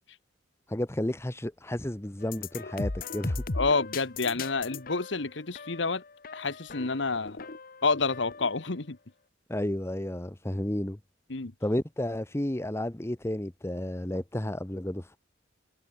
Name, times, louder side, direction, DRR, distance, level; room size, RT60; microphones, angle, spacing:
voice 1, 0.7-3.4 9.5-11.0 11.6-15.2, left 1 dB, 15° left, 0.9 m, -32 dB
sound 1, 2.2-8.7, left 3 dB, 50° left, 1.1 m, -38 dB
voice 2, 3.5-6.0 6.3-7.5 7.8-9.0 11.3-11.5, left 4 dB, 70° left, 1.4 m, -29 dB
head